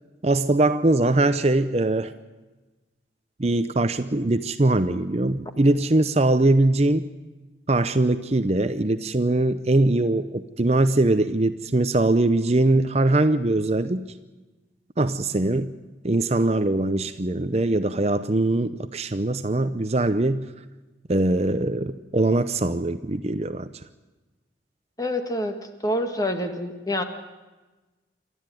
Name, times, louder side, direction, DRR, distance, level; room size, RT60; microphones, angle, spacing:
voice 1, 0.2-2.1 3.4-7.1 7.7-14.1 15.0-15.7 16.0-20.5 21.1-23.7, right 2 dB, 35° right, 11 dB, 0.7 m, -22 dB
voice 2, 25.0-25.6 25.8-27.0, left 1 dB, 20° left, 6 dB, 1.8 m, -26 dB
27.5 x 12.5 x 9.2 m, 1.2 s
head